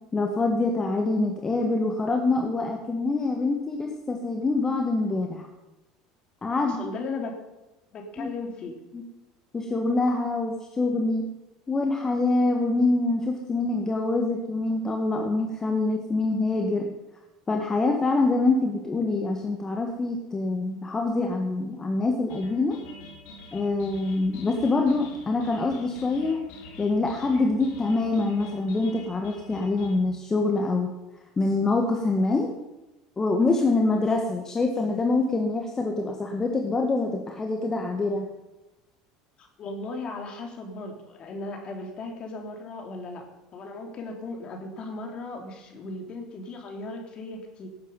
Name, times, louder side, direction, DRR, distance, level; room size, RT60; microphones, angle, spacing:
voice 1, 0.1-5.5 6.4-6.8 8.2-8.3 8.9-9.0 9.5-11.3 11.7-16.9 17.5-22.8 23.5-26.4 26.8-30.9 31.4-32.5 33.2-38.3, left 3 dB, 25° left, 2 dB, 1.8 m, -25 dB
voice 2, 6.6-7.4 7.9-8.7 39.4-43.3 43.5-47.7, left 3 dB, 45° left, 2 dB, 3.6 m, -37 dB
sound 1, 22.3-29.9, left 2 dB, 70° left, 3.1 m, -46 dB
17.5 x 8.8 x 5.6 m, 1.0 s
hypercardioid pair, 85°, 2 cm